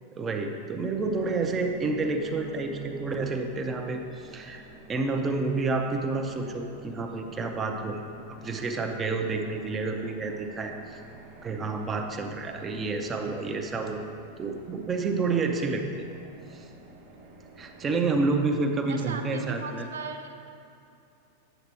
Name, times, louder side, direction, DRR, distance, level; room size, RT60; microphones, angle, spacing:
voice 1, 0.1-4.6 4.9-8.0 8.3-11.0 11.4-14.0 14.4-15.8 16.5-16.7 17.6-19.9, right 3 dB, 20° right, 4 dB, 0.6 m, -29 dB
sound 1, 0.8-18.7, right 3 dB, 50° right, 1.1 m, -49 dB
voice 2, 18.8-20.5, right 4 dB, 65° right, 6 dB, 0.5 m, -38 dB
8.9 x 7.4 x 2.9 m, 2.6 s
figure-of-eight pair, 90°, 0 cm